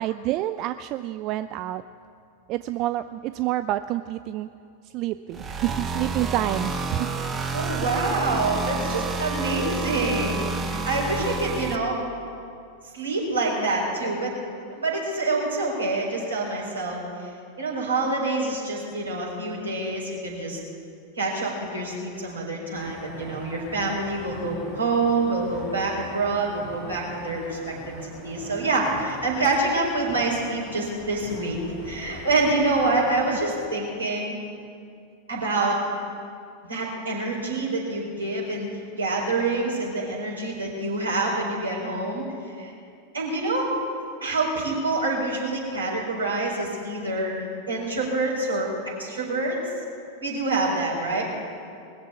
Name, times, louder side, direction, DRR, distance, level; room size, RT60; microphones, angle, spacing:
voice 1, 0.0-1.8 2.5-4.5 4.9-7.1, right 14 dB, 40° right, 11 dB, 0.3 m, -28 dB
sound 1, 5.3-11.8, right 4 dB, 20° right, 1.1 m, -29 dB
voice 2, 7.5-12.0 12.8-14.3 14.7-20.6 21.2-27.9 28.2-31.6 31.8-34.4 35.3-35.8 36.7-42.7 43.1-43.7 44.2-48.7 49.0-49.6 50.2-51.2, right 2 dB, 75° right, -4 dB, 4.7 m, -26 dB
sound 2, 22.7-33.7, left 1 dB, 20° left, 2.2 m, -43 dB
20.5 x 7.4 x 8.4 m, 2.4 s
figure-of-eight pair, 90°, 0 cm